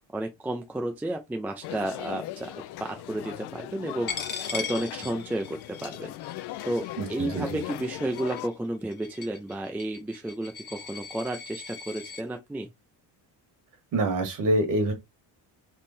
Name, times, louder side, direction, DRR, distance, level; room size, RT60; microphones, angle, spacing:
voice 1, 0.1-2.5 2.8-4.1 4.5-6.1 6.6-12.7, right 1 dB, 5° right, 0.4 m, -32 dB
sound 1, 1.6-8.5, left 15 dB, 75° left, 0.5 m, -39 dB
Coin (dropping), 4.1-12.2, left 6 dB, 25° left, 0.9 m, -39 dB
voice 2, 7.0-7.6 13.9-14.9, right 1 dB, 50° right, 1.6 m, -26 dB
3.7 x 3.2 x 4.1 m
cardioid pair, 170°, 40 cm